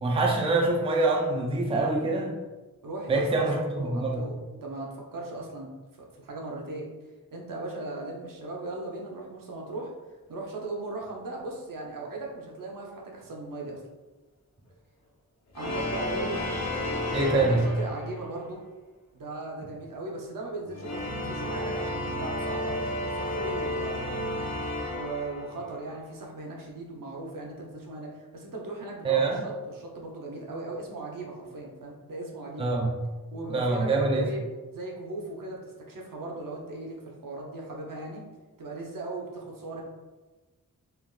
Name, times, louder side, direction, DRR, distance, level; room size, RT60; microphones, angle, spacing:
voice 1, 0.0-2.4 3.1-4.2 17.1-17.6 29.0-29.4 32.6-32.9 33.5-34.3, right 3 dB, 15° right, 0 dB, 0.4 m, -25 dB
voice 2, 2.8-5.7 5.9-6.9 7.3-9.9 10.3-13.8 15.5-16.4 17.3-18.6 19.1-24.2 24.9-32.7 33.3-34.4 34.7-38.2 38.6-39.8, right 2 dB, 75° right, -1 dB, 0.6 m, -38 dB
sound 1, 15.6-18.3 20.6-25.8, left 1 dB, 50° left, 0.6 m, -32 dB
3.3 x 2.3 x 2.3 m, 1.2 s
wide cardioid pair, 85°, 34 cm